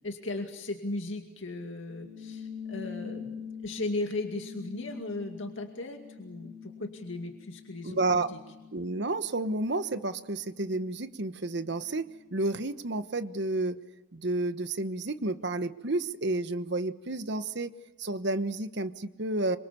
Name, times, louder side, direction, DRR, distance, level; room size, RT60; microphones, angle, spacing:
voice 1, 0.0-8.4, left 2 dB, 65° left, 3 dB, 2.4 m, -37 dB
sound 1, 1.9-12.8, left 7 dB, 10° left, 7.2 m, -46 dB
voice 2, 7.8-8.3 8.7-12.0 12.3-13.8 14.1-17.7 18.0-19.6, right 2 dB, 55° right, 11 dB, 1.2 m, -31 dB
27.0 x 25.0 x 7.0 m, 1.1 s
head